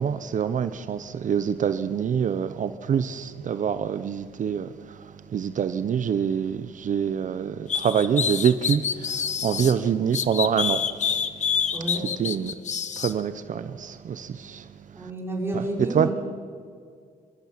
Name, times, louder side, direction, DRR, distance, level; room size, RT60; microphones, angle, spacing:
voice 1, 0.0-5.1 5.3-10.8 12.2-12.5 13.0-14.7 15.5-15.6 15.9-16.1, right 8 dB, 55° right, 0.7 m, -26 dB
sound 1, 7.7-9.7 10.1-13.1, left 7 dB, 50° left, 1.0 m, -27 dB
voice 2, 11.7-12.0 14.9-16.1, right 1 dB, 15° right, 5.1 m, -30 dB
26.5 x 13.5 x 7.4 m
cardioid pair, 125°, 16 cm